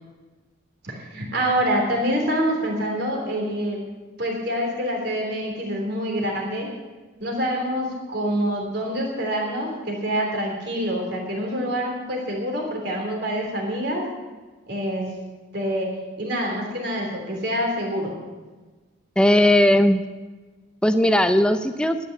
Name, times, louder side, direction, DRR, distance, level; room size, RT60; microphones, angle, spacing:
voice 1, 0.8-3.8 4.2-6.7 7.2-14.0 14.7-15.1 15.5-15.9 16.2-18.1, equal, 55° right, 0 dB, 3.4 m, -26 dB
voice 2, 19.2-20.0 20.8-22.0, left 1 dB, 5° left, 9 dB, 0.5 m, -17 dB
12.0 x 9.5 x 7.9 m, 1.3 s
head